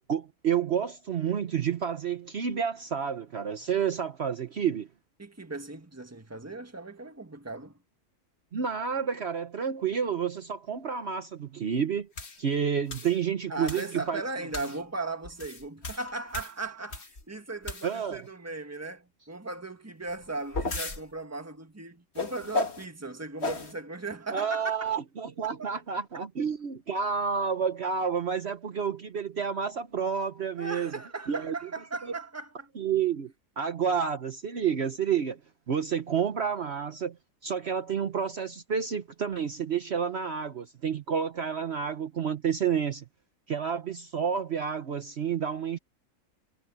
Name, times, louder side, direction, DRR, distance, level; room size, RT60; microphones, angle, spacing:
voice 1, 0.0-4.9 8.5-12.1 12.4-14.2 17.8-18.2 24.3-30.9 31.3-31.5 32.8-35.4 35.7-37.1 37.4-43.0 43.5-45.8, right 7 dB, 55° right, 1.2 m, -30 dB
voice 2, 5.2-7.8 13.5-24.9 25.4-25.7 30.6-32.7, right 3 dB, 10° right, 1.5 m, -37 dB
sound 1, 12.2-12.4 12.9-13.2 13.7-14.0 14.5-14.8 15.2-17.2 17.6-18.2 20.1-21.0 22.2-22.8 23.4-23.7, left 3 dB, 50° left, 2.4 m, -34 dB
omnidirectional pair, 1.4 m